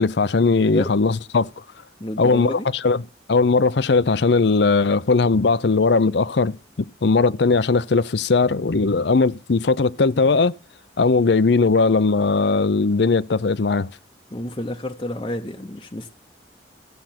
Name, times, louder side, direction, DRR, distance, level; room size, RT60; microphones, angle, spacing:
voice 1, 0.0-1.5 2.2-3.0 3.3-10.6 11.0-13.9, left 4 dB, 65° left, 0.6 m, -19 dB
voice 2, 2.0-2.7 14.3-16.1, left 1 dB, 25° left, 0.8 m, -29 dB
15.0 x 7.8 x 5.9 m
head